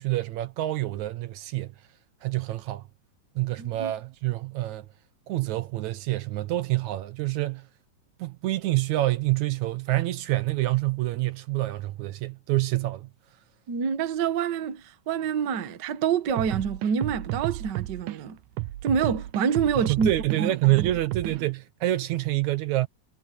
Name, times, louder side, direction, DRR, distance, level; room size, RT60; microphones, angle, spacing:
voice 1, 0.0-1.7 2.2-2.9 3.4-4.9 5.3-7.7 8.2-13.1 19.8-22.9, right 16 dB, 70° right, 2.1 m, -27 dB
voice 2, 3.6-3.9 13.7-18.4 18.8-20.1 20.4-20.9, right 7 dB, 55° right, 1.2 m, -27 dB
sound 1, 16.3-18.2 18.6-21.5, right 18 dB, 85° right, 2.4 m, -33 dB
omnidirectional pair, 3.6 m